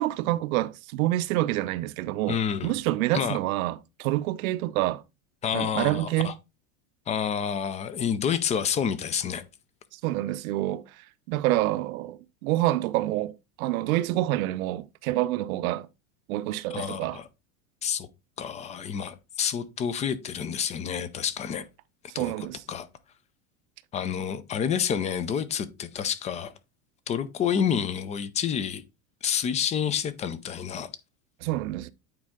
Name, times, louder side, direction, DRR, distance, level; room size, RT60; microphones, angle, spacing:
voice 1, 0.0-5.0 5.5-6.3 9.9-15.9 16.3-17.2 22.2-22.6 31.4-31.9, right 16 dB, 75° right, 0.7 m, -27 dB
voice 2, 2.3-2.7 3.1-3.4 5.4-6.3 7.1-9.4 16.7-17.3 17.8-18.1 18.4-21.7 22.1-22.3 22.7-22.9 23.9-26.5 27.1-28.8 29.2-30.9, left 8 dB, 20° left, 0.4 m, -29 dB
8.9 x 4.3 x 3.5 m
supercardioid pair, 140°, 42 cm